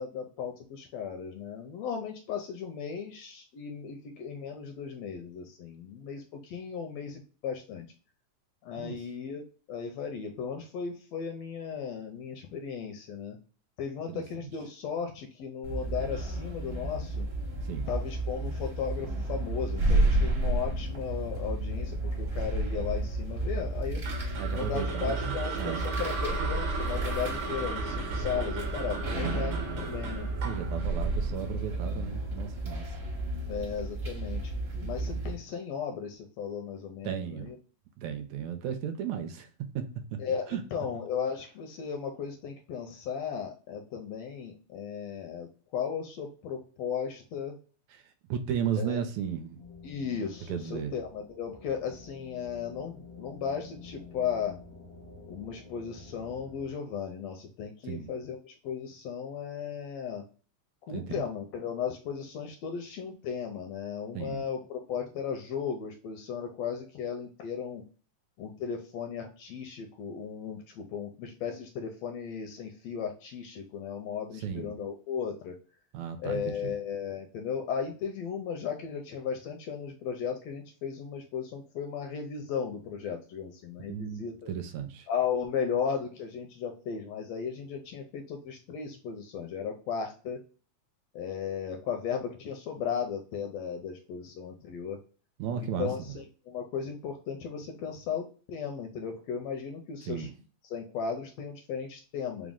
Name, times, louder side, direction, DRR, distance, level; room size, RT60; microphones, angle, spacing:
voice 1, 0.0-7.9 8.6-13.4 13.8-17.3 17.9-24.0 24.5-30.3 33.5-34.5 34.8-37.6 40.2-47.5 48.8-49.0 49.8-54.6 55.3-60.2 60.9-67.8 68.4-75.6 76.2-84.5 85.1-90.4 91.1-95.0 95.5-100.3 100.6-102.5, left 7 dB, 80° left, 1.5 m, -36 dB
sound 1, 15.6-35.3, right 2 dB, 35° right, 0.8 m, -31 dB
sound 2, 24.0-32.2, right 4 dB, 60° right, 1.6 m, -37 dB
voice 2, 24.4-25.8 30.4-32.9 37.0-37.5 38.0-39.5 39.8-40.2 40.5-40.6 48.3-49.6 50.5-50.9 57.9-58.1 60.9-61.3 64.2-64.4 74.4-74.8 75.9-76.7 83.9-85.1 95.4-96.2 100.1-100.3, right 8 dB, 80° right, 1.8 m, -35 dB
sound 3, 49.6-56.7, left 3 dB, 35° left, 0.3 m, -49 dB
4.8 x 2.0 x 3.5 m
omnidirectional pair, 3.3 m